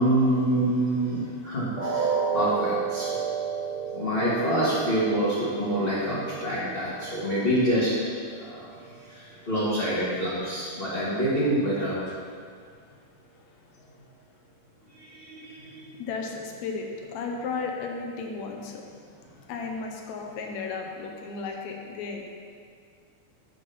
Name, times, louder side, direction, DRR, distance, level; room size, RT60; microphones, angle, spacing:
voice 1, 0.0-3.2 3.9-7.9 8.4-8.7 9.1-12.0 15.0-15.9, right 1 dB, 25° left, -10 dB, 1.4 m, -26 dB
sound 1, 1.8-7.7 8.1-8.3 8.8-8.9, right 6 dB, 65° right, 3.0 m, -31 dB
voice 2, 16.0-18.9 19.5-22.2, left 4 dB, 75° left, 2 dB, 2.1 m, -34 dB
7.5 x 7.1 x 5.7 m, 2.1 s
omnidirectional pair, 3.4 m